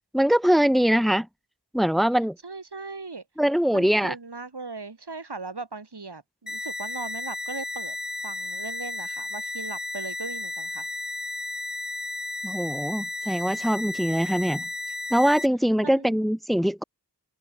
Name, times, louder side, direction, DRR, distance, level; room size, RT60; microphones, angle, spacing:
voice 1, 0.1-1.3 1.7-2.4 3.4-4.1 12.4-14.7 15.1-16.8, equal, ahead, 2.2 m, -22 dB
voice 2, 2.4-3.2 3.7-8.0 8.2-10.9 15.8-16.2, right 3 dB, 70° right, 5.9 m, -38 dB
sound 1, 6.5-15.5, left 2 dB, 25° left, 1.9 m, -33 dB
open air
wide cardioid pair, 60°, 42 cm